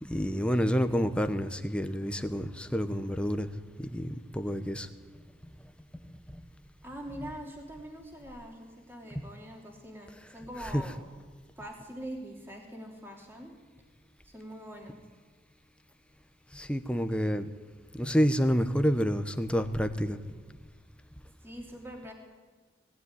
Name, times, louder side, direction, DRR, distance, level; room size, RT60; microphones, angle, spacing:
voice 1, 0.0-3.5 3.9-4.9 9.1-9.3 10.7-10.8 16.5-17.5 18.0-20.2, equal, 5° left, 9 dB, 1.0 m, -28 dB
voice 2, 6.8-11.0 11.6-13.6 14.2-15.0 21.4-22.1, equal, 10° right, 0 dB, 2.9 m, -43 dB
19.5 x 17.0 x 9.7 m, 1.4 s
head